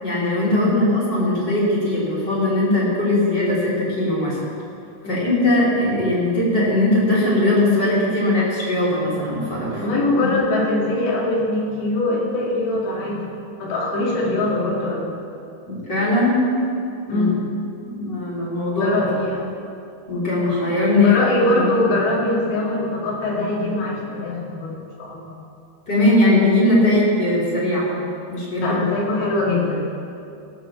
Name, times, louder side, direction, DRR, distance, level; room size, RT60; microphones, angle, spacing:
voice 1, 0.0-4.4 5.0-9.9 15.7-16.4 17.1-17.3 17.8-19.0 19.4-19.5 20.1-21.2 21.4-21.6 25.9-27.9 28.3-28.7, left 2 dB, 25° left, -6 dB, 3.1 m, -19 dB
voice 2, 9.8-13.2 13.6-15.1 17.1-17.4 18.8-19.4 21.0-25.4 28.6-29.8, left 2 dB, 70° left, -4 dB, 4.5 m, -22 dB
17.5 x 6.8 x 7.3 m, 2.6 s
omnidirectional pair, 5.2 m